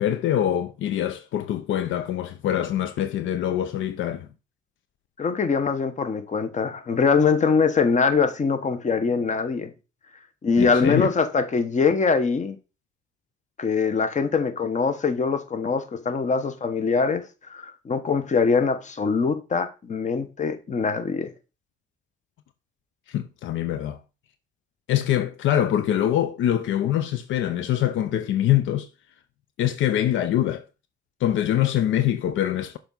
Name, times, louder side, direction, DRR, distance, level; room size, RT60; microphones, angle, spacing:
voice 1, 0.0-4.3 10.6-11.1 23.1-24.0 24.9-28.9 29.6-30.6 31.2-32.8, left 11 dB, 75° left, 0.5 m, -24 dB
voice 2, 5.2-9.7 10.4-12.6 13.6-17.2 17.5-21.3, left 5 dB, 35° left, 1.0 m, -23 dB
6.8 x 4.7 x 3.8 m
cardioid pair, 90°, 20 cm